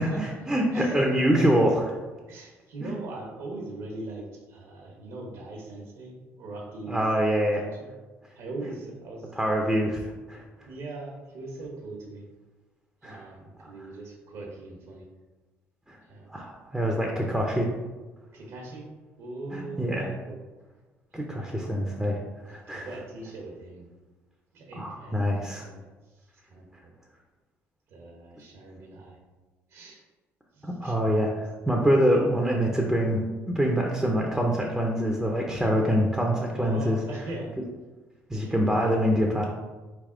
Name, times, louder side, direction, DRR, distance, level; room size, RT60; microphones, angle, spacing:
voice 1, 0.0-1.7 2.8-2.9 6.9-7.6 9.4-10.4 13.0-13.2 15.9-16.0 16.3-17.7 19.5-20.1 21.1-22.2 22.4-22.9 24.8-25.6 30.6-37.0 38.3-39.5, equal, 5° right, 0 dB, 0.6 m, -25 dB
voice 2, 0.7-1.7 2.3-7.0 7.6-7.9 8.3-9.4 10.7-12.2 13.0-15.1 16.0-16.5 18.3-18.9 19.2-20.4 21.1-21.8 22.5-23.9 24.5-26.9 27.9-29.2 29.7-30.0 30.5-31.4 36.6-37.5 38.3-38.7, right 2 dB, 75° right, -1 dB, 1.0 m, -41 dB
4.0 x 3.4 x 3.7 m, 1.2 s
cardioid pair, 100°, 5 cm